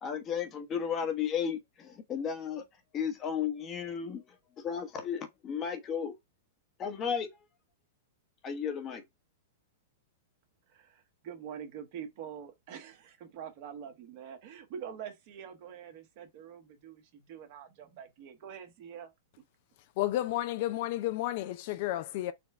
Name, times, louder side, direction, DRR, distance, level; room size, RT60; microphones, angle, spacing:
voice 1, 0.0-2.7 2.9-4.2 4.6-6.1 6.8-7.3 8.4-9.0, left 7 dB, 25° left, 1.0 m, -34 dB
voice 2, 10.7-19.1, right 8 dB, 50° right, 1.2 m, -45 dB
voice 3, 20.0-22.3, left 14 dB, 50° left, 0.4 m, -31 dB
4.2 x 2.3 x 4.2 m
hypercardioid pair, 135°, 0 cm